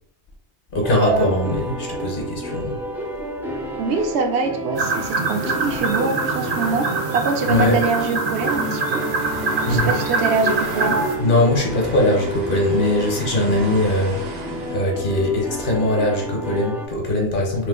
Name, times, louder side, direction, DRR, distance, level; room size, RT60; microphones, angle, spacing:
voice 1, 0.7-2.8 7.5-7.8 9.7-10.0 11.2-14.4 14.7-17.7, left 1 dB, 55° left, 0 dB, 0.9 m, -21 dB
sound 1, 0.8-16.9, right 1 dB, 5° right, 0.3 m, -30 dB
voice 2, 3.8-6.9 7.1-9.1 9.7-11.0, right 4 dB, 70° right, 4 dB, 0.8 m, -24 dB
sound 2, 4.7-11.2, right 3 dB, 45° right, 0.6 m, -24 dB
sound 3, 8.5-14.8, right 2 dB, 85° right, 1.1 m, -36 dB
3.0 x 2.1 x 3.5 m, 0.65 s
omnidirectional pair, 1.2 m